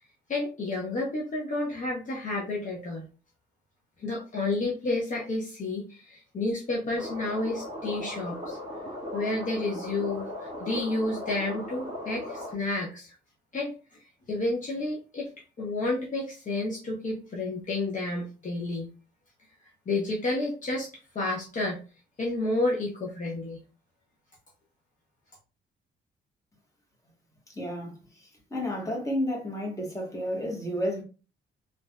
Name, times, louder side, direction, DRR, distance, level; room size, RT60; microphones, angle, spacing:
voice 1, 0.3-3.1 4.0-8.6 9.1-13.1 13.5-13.7 14.3-15.3 15.6-18.9 19.9-20.9 21.1-21.8 22.2-23.6, left 2 dB, 40° left, 0.8 m, -30 dB
sound 1, 7.0-12.5, left 1 dB, 35° right, 1.3 m, -37 dB
voice 2, 27.5-31.0, equal, 15° left, 1.3 m, -31 dB
3.2 x 2.6 x 2.2 m
cardioid pair, 90°, 20 cm